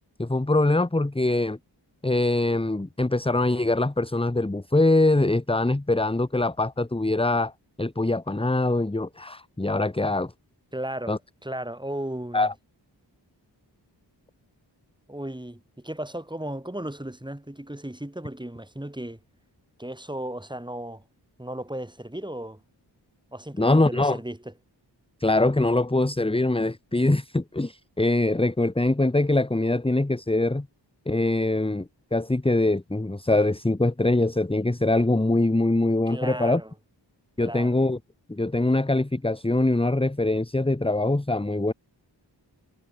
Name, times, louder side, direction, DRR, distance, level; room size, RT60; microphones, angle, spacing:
voice 1, 0.2-1.6 2.0-7.5 7.8-10.3 11.1-11.2 12.3-12.5 23.6-24.2 25.2-30.7 31.1-31.8 32.1-36.6 37.4-38.0 38.3-41.7, left 2 dB, 15° left, 1.3 m, -23 dB
voice 2, 10.7-11.2 11.4-12.5 15.1-19.2 19.8-21.0 21.4-22.6 23.3-24.5 36.1-36.7 37.4-37.8, right 1 dB, 10° right, 4.0 m, -35 dB
cardioid pair, 50°, 43 cm